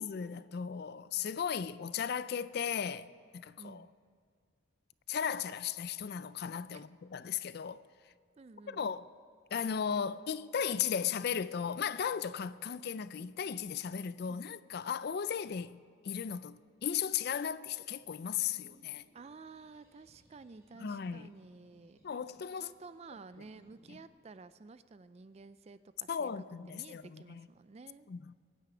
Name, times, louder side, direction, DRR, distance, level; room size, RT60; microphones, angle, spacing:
voice 1, 0.0-3.1 3.3-3.8 5.1-7.8 8.7-9.1 9.5-15.8 16.0-19.0 20.8-21.3 22.0-22.7 26.1-27.4 28.1-28.3, left 7 dB, 50° left, 0.4 m, -36 dB
voice 2, 3.6-3.9 6.7-6.9 8.4-8.9 14.3-14.4 19.1-22.0 22.6-28.1, right 3 dB, 30° right, 0.3 m, -52 dB
sound 1, 17.9-24.1, right 1 dB, 15° right, 4.5 m, -66 dB
23.0 x 9.2 x 4.9 m
head